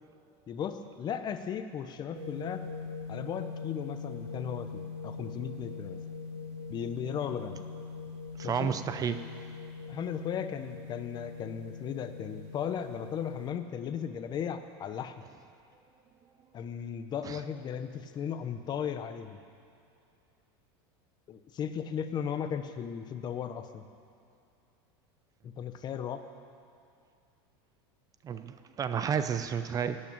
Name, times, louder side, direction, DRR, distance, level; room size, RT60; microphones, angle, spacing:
voice 1, 0.5-2.6 3.1-6.0 6.7-7.6 8.4-8.7 9.9-15.2 16.5-19.4 21.3-23.8 25.4-26.2, left 8 dB, 35° left, 9 dB, 1.0 m, -36 dB
sound 1, 2.1-13.5, left 4 dB, 60° right, 2.8 m, -42 dB
voice 2, 8.4-9.2 17.2-17.4 28.2-30.0, right 7 dB, 25° right, 10 dB, 0.7 m, -31 dB
18.0 x 8.8 x 8.9 m, 2.5 s
supercardioid pair, 125°, 13 cm